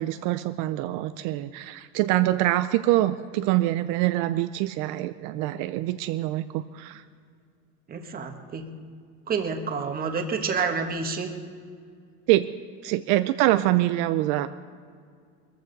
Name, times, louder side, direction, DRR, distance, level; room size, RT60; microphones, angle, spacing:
voice 1, 0.0-7.0 12.3-12.5 12.8-14.5, right 15 dB, 75° right, 11 dB, 0.6 m, -25 dB
voice 2, 7.9-8.7 9.3-11.3, right 5 dB, 30° right, 6 dB, 1.4 m, -29 dB
21.0 x 14.5 x 4.0 m, 2.1 s
cardioid pair, 140°, 31 cm